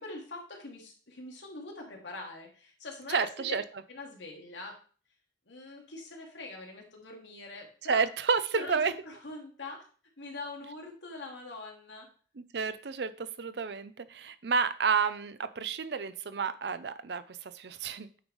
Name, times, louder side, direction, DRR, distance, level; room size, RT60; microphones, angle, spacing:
voice 1, 0.0-3.6 3.9-4.8 5.5-8.0 8.5-9.8 10.2-12.1, left 2 dB, 85° left, 1 dB, 2.0 m, -43 dB
voice 2, 3.1-3.6 7.9-8.9 12.5-18.2, right 5 dB, 70° right, 13 dB, 0.6 m, -30 dB
8.7 x 3.2 x 5.3 m, 0.41 s
head